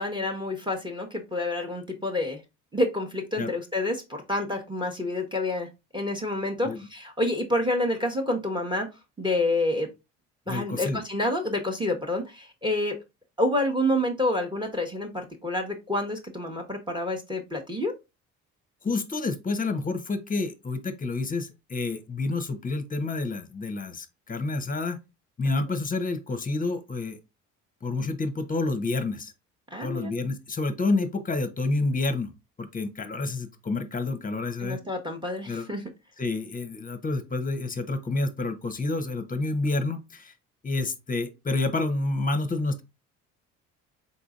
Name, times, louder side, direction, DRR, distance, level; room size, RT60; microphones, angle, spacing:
voice 1, 0.0-2.4 2.7-8.9 9.2-9.9 10.5-13.0 13.4-17.9 29.7-30.1 34.6-35.8, left 1 dB, 10° right, 1.1 m, -28 dB
voice 2, 10.5-11.0 18.8-25.0 25.4-27.2 27.8-29.3 29.8-32.3 32.6-34.8 35.5-35.6 36.2-40.3 40.6-42.8, left 3 dB, 20° left, 0.9 m, -29 dB
4.0 x 3.8 x 2.4 m
hypercardioid pair, 60°, 39 cm